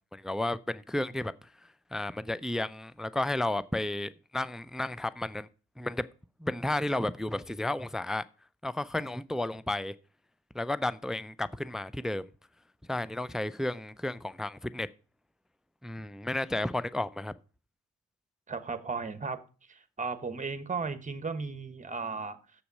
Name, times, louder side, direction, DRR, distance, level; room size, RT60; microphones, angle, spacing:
voice 1, 0.1-1.3 1.9-5.5 5.8-6.1 6.4-8.2 8.6-9.9 10.5-12.3 12.9-14.9 15.8-17.3, left 1 dB, ahead, 0.4 m, -32 dB
voice 2, 18.5-19.4 19.7-22.4, right 4 dB, 25° right, 1.2 m, -35 dB
7.2 x 6.9 x 5.4 m
supercardioid pair, 65°, 33 cm